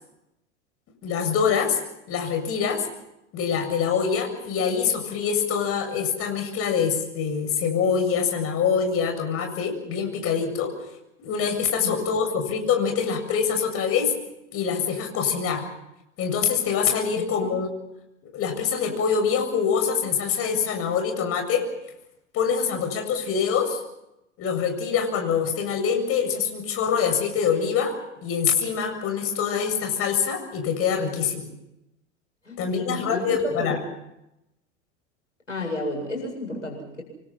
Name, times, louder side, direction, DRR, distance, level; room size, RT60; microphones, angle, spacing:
voice 1, 1.0-1.8 2.1-2.8 3.3-10.7 11.2-14.1 14.5-15.6 16.2-17.7 18.3-21.6 22.3-23.8 24.4-27.9 28.2-31.5 32.6-33.8, left 6 dB, 40° left, 5 dB, 7.5 m, -24 dB
voice 2, 11.8-12.6 17.1-17.5 32.4-33.3 33.6-33.8 35.5-37.0, left 2 dB, 85° left, 1 dB, 7.9 m, -33 dB
27.5 x 24.5 x 5.9 m, 0.87 s
figure-of-eight pair, 80°, 36 cm